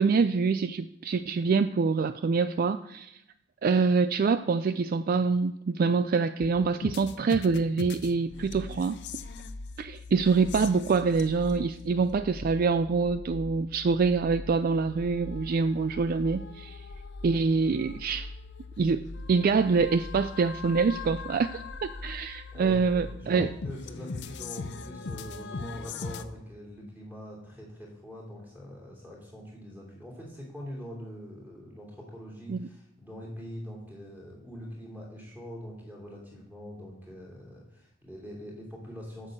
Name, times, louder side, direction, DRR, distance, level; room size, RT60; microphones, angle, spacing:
voice 1, 0.0-3.2 3.6-9.0 9.8-16.8 17.2-18.3 18.8-23.5 32.5-32.7, right 4 dB, 45° right, 12 dB, 0.3 m, -25 dB
sound 1, 6.4-26.2, left 3 dB, 55° left, 0.6 m, -41 dB
voice 2, 22.5-39.3, equal, 10° right, -4 dB, 2.9 m, -43 dB
7.9 x 6.3 x 7.5 m, 0.82 s
head